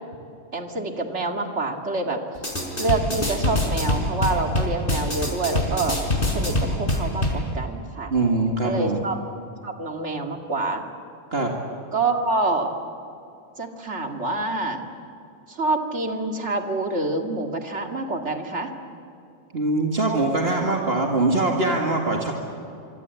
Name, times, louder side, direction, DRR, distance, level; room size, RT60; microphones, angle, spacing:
voice 1, 0.5-2.2 2.8-6.0 6.3-8.1 8.6-9.2 9.6-10.9 11.9-12.7 13.6-14.8 15.5-18.7, right 2 dB, 85° right, 4 dB, 2.7 m, -27 dB
sound 1, 2.4-7.4, left 1 dB, 55° left, 4.9 m, -25 dB
voice 2, 8.1-9.0 11.3-11.5 19.5-22.3, right 2 dB, 60° right, 1 dB, 2.5 m, -22 dB
27.0 x 24.5 x 8.4 m, 2.7 s
omnidirectional pair, 1.1 m